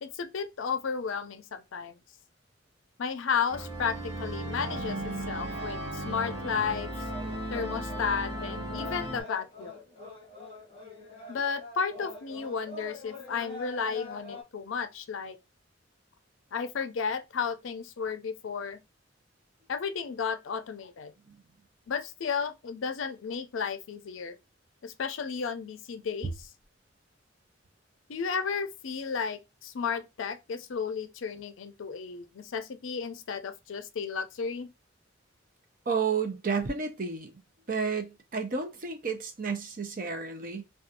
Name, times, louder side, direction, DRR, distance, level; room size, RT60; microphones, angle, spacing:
voice 1, 0.0-2.0 3.0-6.9 7.5-9.7 11.3-15.4 16.5-18.8 19.7-21.1 21.9-24.3 24.8-26.5 28.1-34.7, left 6 dB, 75° left, 0.4 m, -33 dB
sound 1, 3.5-9.2, right 1 dB, 20° right, 1.0 m, -36 dB
sound 2, 5.9-14.4, left 3 dB, 25° left, 0.9 m, -45 dB
voice 2, 35.9-37.3 37.7-40.6, right 5 dB, 45° right, 0.6 m, -31 dB
2.5 x 2.3 x 2.6 m
head